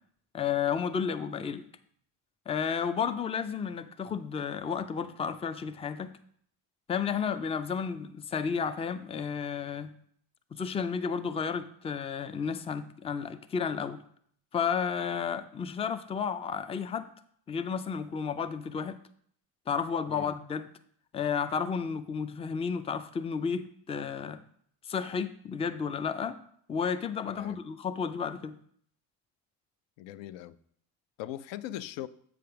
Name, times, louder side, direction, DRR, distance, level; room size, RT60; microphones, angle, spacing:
voice 1, 0.3-1.6 2.5-6.1 6.9-9.9 10.5-14.0 14.5-17.1 17.5-19.0 19.7-20.7 21.1-24.4 24.8-26.4 26.7-28.6, left 6 dB, 15° left, 10 dB, 0.3 m, -32 dB
voice 2, 30.0-30.6 31.2-32.1, left 13 dB, 65° left, 15 dB, 0.5 m, -40 dB
7.6 x 3.5 x 5.7 m, 0.64 s
supercardioid pair, 75°, 48 cm